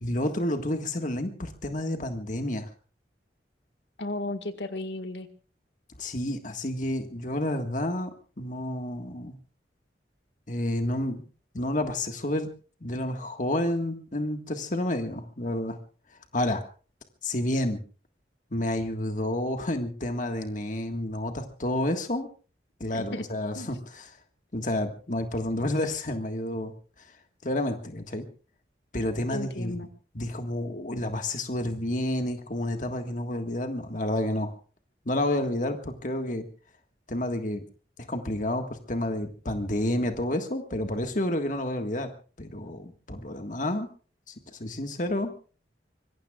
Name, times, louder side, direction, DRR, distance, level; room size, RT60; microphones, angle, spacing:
voice 1, 0.0-2.7 6.0-8.1 8.4-9.3 10.5-11.2 11.5-12.5 12.8-15.8 16.3-16.6 17.2-17.8 18.5-22.3 22.8-24.1 24.5-26.7 27.4-28.2 28.9-29.8 30.1-34.5 35.0-36.4 37.1-37.6 38.1-42.1 42.4-43.9 44.3-45.3, left 1 dB, 45° left, 5 dB, 1.7 m, -30 dB
voice 2, 4.0-5.3 22.9-23.2 23.6-23.7 29.3-29.9, left 2 dB, 80° left, 9 dB, 1.9 m, -34 dB
25.5 x 22.0 x 2.4 m, 0.38 s
head